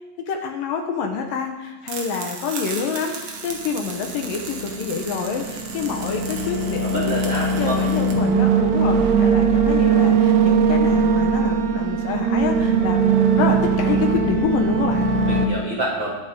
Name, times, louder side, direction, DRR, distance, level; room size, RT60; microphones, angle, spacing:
voice 1, 0.3-13.0 13.4-15.1, left 6 dB, 70° left, 3 dB, 2.5 m, -27 dB
sound 1, 1.8-8.1, right 4 dB, 55° right, 2.2 m, -36 dB
sound 2, 3.6-15.5, right 5 dB, 80° right, 1.6 m, -20 dB
voice 2, 6.8-7.8 15.2-16.2, right 1 dB, 40° right, -5 dB, 2.0 m, -27 dB
21.0 x 8.6 x 3.6 m, 1.1 s
omnidirectional pair, 4.4 m